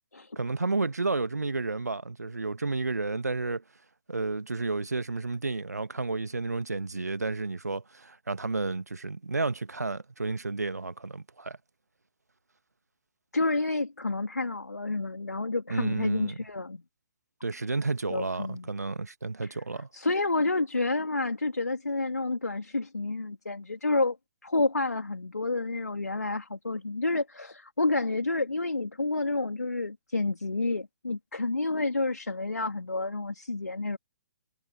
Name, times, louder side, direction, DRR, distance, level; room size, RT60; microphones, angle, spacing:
voice 1, 0.3-3.6 4.1-11.6 15.7-16.4 17.4-19.9, right 3 dB, 75° right, 1.7 m, -31 dB
voice 2, 13.3-16.8 18.1-18.7 19.4-19.6 19.9-24.2 24.4-34.0, left 2 dB, 75° left, 2.4 m, -29 dB
figure-of-eight pair, 130°, 9 cm